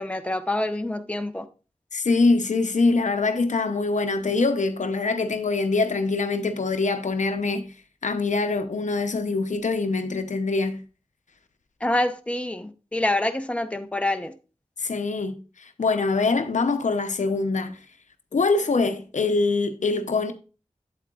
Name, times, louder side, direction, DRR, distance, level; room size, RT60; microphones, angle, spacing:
voice 1, 0.0-1.5 11.8-14.3, left 1 dB, 10° left, 0.8 m, -26 dB
voice 2, 1.9-7.7 8.0-10.8 14.8-17.8 18.3-20.3, left 3 dB, 90° left, 0.7 m, -24 dB
8.3 x 7.9 x 2.4 m
wide cardioid pair, 55°, 12 cm